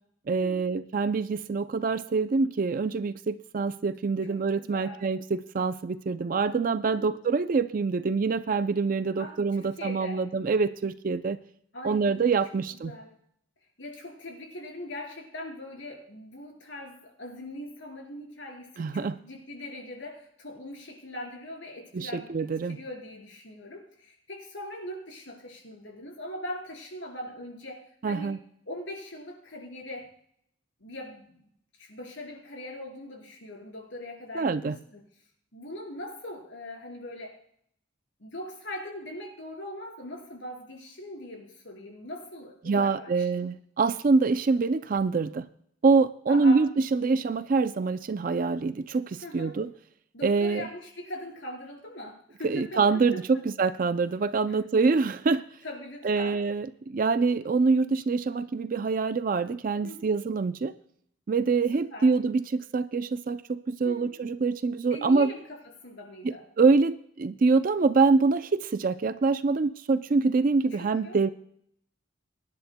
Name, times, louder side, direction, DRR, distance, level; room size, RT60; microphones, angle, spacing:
voice 1, 0.3-11.4 11.8-12.9 18.8-19.2 21.9-22.8 28.0-28.4 34.3-34.7 42.6-45.5 45.8-49.7 50.2-50.7 52.4-55.4 56.0-60.7 61.3-65.3 66.2-71.3, right 4 dB, 45° right, 11 dB, 0.4 m, -25 dB
voice 2, 4.3-5.0 6.8-7.1 9.2-10.2 11.7-12.4 12.8-13.2 13.8-28.3 28.7-30.1 30.8-31.4 31.8-35.0 35.5-37.4 38.2-43.5 46.3-46.6 49.2-49.5 50.1-53.4 54.5-54.6 55.6-56.4 59.8-60.1 61.7-62.1 63.8-64.2 64.9-66.5 70.7-71.2, left 1 dB, 65° left, 0 dB, 4.3 m, -41 dB
23.5 x 10.5 x 2.2 m, 0.68 s
head